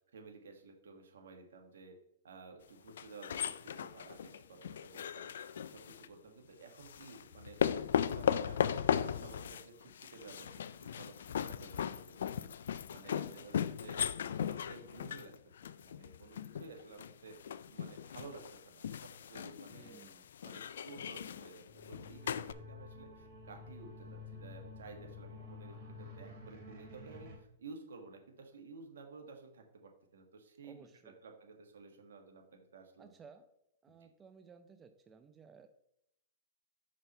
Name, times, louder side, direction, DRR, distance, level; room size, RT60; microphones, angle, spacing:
voice 1, 0.1-2.0 2.2-5.3 5.7-8.6 8.9-12.5 12.9-15.3 15.6-20.0 20.4-33.1 34.0-34.1, right 4 dB, 75° right, 3 dB, 1.6 m, -54 dB
sound 1, 2.9-6.1 6.8-22.5, left 8 dB, 75° left, 0.3 m, -37 dB
voice 2, 13.3-13.8 19.7-20.3 30.6-31.2 33.0-33.5 33.8-35.7, right 5 dB, 20° right, 8 dB, 0.5 m, -58 dB
sound 2, 21.7-27.4, left 3 dB, 45° right, 2.8 m, -51 dB
5.2 x 4.4 x 5.6 m, 0.78 s
hypercardioid pair, 120°, 0 cm